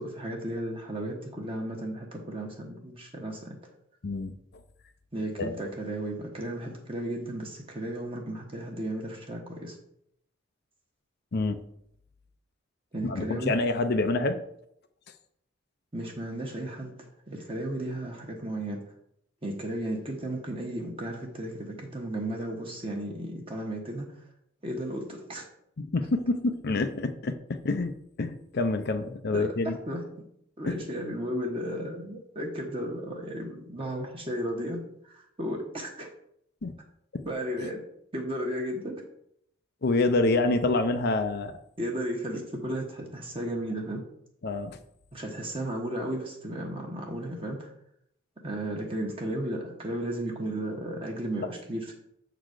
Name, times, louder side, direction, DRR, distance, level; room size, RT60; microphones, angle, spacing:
voice 1, 0.0-3.6 5.1-9.8 12.9-13.5 15.9-18.9 19.4-24.1 24.6-25.4 29.3-30.2 30.6-34.8 35.0-36.1 37.2-37.8 38.1-38.9 41.8-44.0 45.1-47.7 48.4-51.9, right 1 dB, 25° right, 0 dB, 1.1 m, -34 dB
voice 2, 13.0-14.4 25.8-27.9 28.2-29.8 30.7-30.8 36.6-36.7 37.1-37.2 39.8-41.5 44.4-44.8, left 2 dB, 50° left, 8 dB, 0.5 m, -27 dB
7.3 x 4.0 x 6.5 m, 0.73 s
head